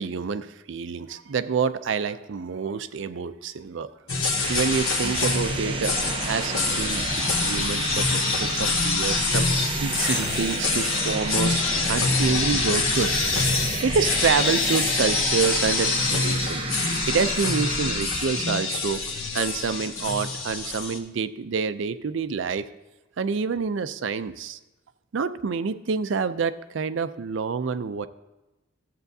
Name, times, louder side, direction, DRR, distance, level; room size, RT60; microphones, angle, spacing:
voice 1, 0.0-3.9 4.5-6.0 6.3-9.5 9.8-11.6 11.9-13.3 13.8-16.6 17.1-19.0 19.3-22.7 23.2-24.6 25.1-28.1, right 5 dB, 65° right, 13 dB, 0.4 m, -27 dB
sound 1, 4.1-21.0, left 4 dB, 90° left, 1.2 m, -26 dB
sound 2, 4.1-18.7, right 2 dB, 25° right, 0.7 m, -31 dB
14.0 x 8.0 x 2.7 m, 1.0 s
head